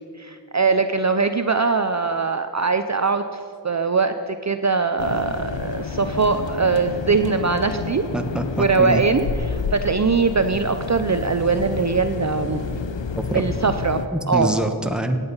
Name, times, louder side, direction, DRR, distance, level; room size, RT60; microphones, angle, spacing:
voice 1, 0.2-8.1 8.6-12.6 13.3-14.5, right 4 dB, 40° right, 8 dB, 0.6 m, -21 dB
voice 2, 3.9-4.3 6.4-6.8 8.1-9.0 13.2-13.5 14.1-15.2, right 1 dB, ahead, 6 dB, 1.2 m, -26 dB
sound 1, 5.0-14.1, left 5 dB, 85° left, 0.9 m, -30 dB
16.5 x 9.9 x 5.5 m, 2.3 s
wide cardioid pair, 55°, 44 cm